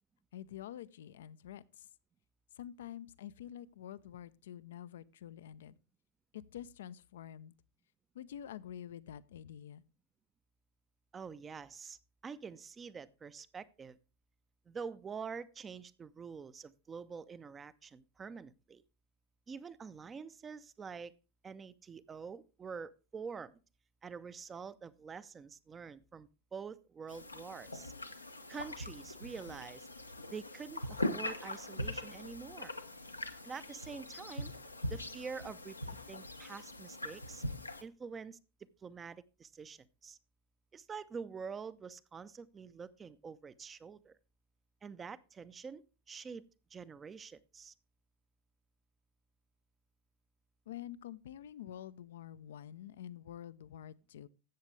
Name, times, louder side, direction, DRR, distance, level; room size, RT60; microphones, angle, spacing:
voice 1, 0.3-1.9 2.6-5.8 6.3-7.5 8.1-9.8 50.7-54.3, left 11 dB, 60° left, 0.5 m, -47 dB
voice 2, 11.1-12.0 12.2-14.0 14.7-18.8 19.5-21.1 21.4-23.6 24.0-27.9 28.5-29.9 30.3-32.7 33.4-34.5 34.9-37.4 37.8-40.2 40.7-44.2 44.8-46.4 46.7-47.7, right 5 dB, 20° right, 0.6 m, -46 dB
sound 1, 27.1-37.8, left 1 dB, 85° left, 0.9 m, -42 dB
13.5 x 8.1 x 3.2 m
figure-of-eight pair, 90°, 0 cm